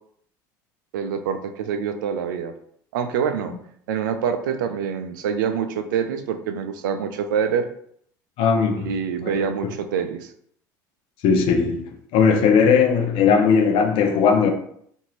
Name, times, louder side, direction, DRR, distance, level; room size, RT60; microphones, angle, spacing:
voice 1, 0.9-2.5 2.9-3.5 3.9-7.7 8.8-10.3, right 7 dB, 80° right, 0.4 m, -25 dB
voice 2, 8.4-8.9 9.2-9.3 11.2-11.8 12.1-14.5, left 6 dB, 60° left, 0.6 m, -18 dB
2.6 x 2.6 x 3.0 m
hypercardioid pair, 70°, 10 cm